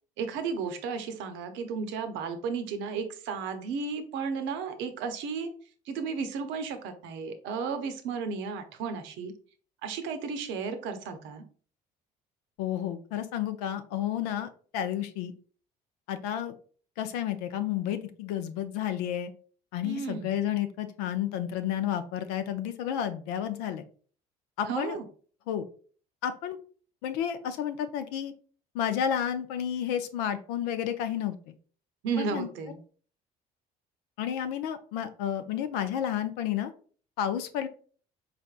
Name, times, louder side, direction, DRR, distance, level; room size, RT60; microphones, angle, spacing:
voice 1, 0.2-5.5 5.9-9.3 9.8-11.4 19.8-20.3 24.7-25.0 32.0-32.8, right 5 dB, 75° right, 8 dB, 0.7 m, -33 dB
voice 2, 12.6-15.3 16.1-16.5 17.0-19.3 19.7-23.8 24.6-25.0 25.5-25.6 26.2-26.6 27.0-28.3 28.7-31.5 32.2-32.5 34.2-36.7 37.2-37.7, left 10 dB, 85° left, 9 dB, 0.5 m, -31 dB
4.1 x 3.3 x 2.4 m, 0.42 s
supercardioid pair, 70°, 19 cm